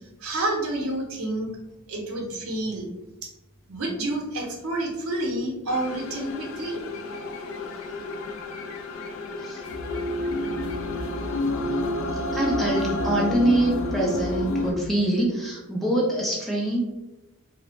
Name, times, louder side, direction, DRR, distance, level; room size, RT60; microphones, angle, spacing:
voice 1, 0.2-1.5 1.9-2.9 3.2-3.3 3.7-6.8, right 1 dB, 70° right, 0 dB, 0.7 m, -29 dB
sound 1, 5.7-14.7, left 2 dB, 65° left, 0.3 m, -29 dB
voice 2, 12.3-16.8, right 1 dB, ahead, -3 dB, 0.4 m, -24 dB
2.4 x 2.0 x 3.0 m, 1.0 s
head